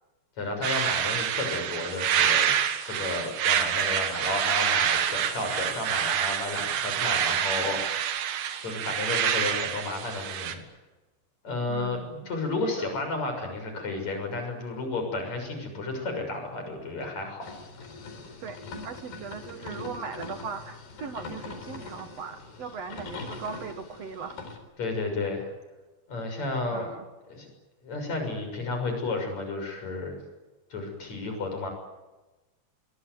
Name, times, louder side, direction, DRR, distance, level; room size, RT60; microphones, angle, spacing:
voice 1, 0.4-8.1 8.6-10.7 11.4-17.5 24.8-25.5 26.1-26.9 27.3-27.5 27.8-30.1 30.7-31.7, left 2 dB, 40° left, 5 dB, 7.7 m, -32 dB
sound 1, 0.6-10.6, right 9 dB, 85° right, 4.2 m, -27 dB
voice 2, 11.7-12.3 12.8-12.9 18.4-18.6 18.8-24.4 26.7-27.0, right 6 dB, 65° right, 7 dB, 1.6 m, -39 dB
sound 2, 17.4-24.6, left 3 dB, 55° left, 5.9 m, -42 dB
25.0 x 22.5 x 9.6 m, 1.1 s
omnidirectional pair, 5.2 m